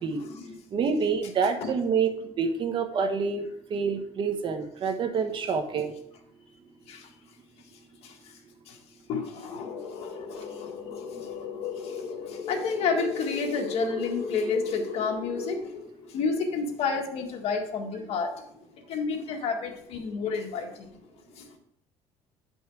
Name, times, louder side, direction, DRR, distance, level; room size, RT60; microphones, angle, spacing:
voice 1, 0.2-0.6 1.6-1.7 6.9-7.1 8.0-8.1 8.7-8.8 9.1-18.4 18.9-20.9 21.4-21.6, left 5 dB, 65° left, 2 dB, 1.7 m, -30 dB
voice 2, 0.7-3.4 3.7-5.9, right 5 dB, 45° right, 7 dB, 1.1 m, -27 dB
9.7 x 5.5 x 4.7 m, 0.74 s
cardioid pair, 130°, 11 cm